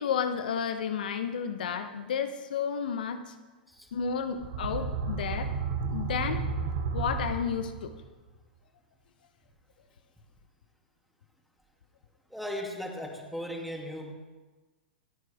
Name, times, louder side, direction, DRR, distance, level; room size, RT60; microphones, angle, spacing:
voice 1, 0.0-3.3 3.9-5.5 5.9-6.4 6.9-7.9, left 7 dB, 65° left, 8 dB, 1.0 m, -32 dB
sound 1, 4.3-8.1, right 5 dB, 55° right, 2.2 m, -32 dB
voice 2, 12.3-14.1, equal, ahead, 1 dB, 2.7 m, -37 dB
28.0 x 9.4 x 3.6 m, 1.3 s
hypercardioid pair, 105°, 5 cm